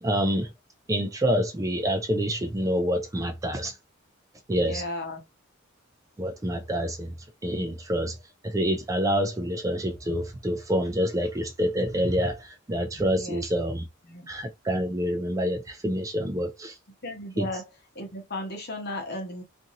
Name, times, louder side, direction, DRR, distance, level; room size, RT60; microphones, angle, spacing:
voice 1, 0.0-0.5 0.9-3.8 4.5-4.8 6.2-7.1 7.4-8.2 8.4-13.9 14.3-16.8 17.4-17.5, equal, 15° right, 0.4 m, -27 dB
voice 2, 4.6-5.2 13.1-13.4 14.0-14.3 17.0-17.6 17.9-19.4, left 1 dB, 50° left, 1.0 m, -35 dB
2.6 x 2.6 x 2.8 m
head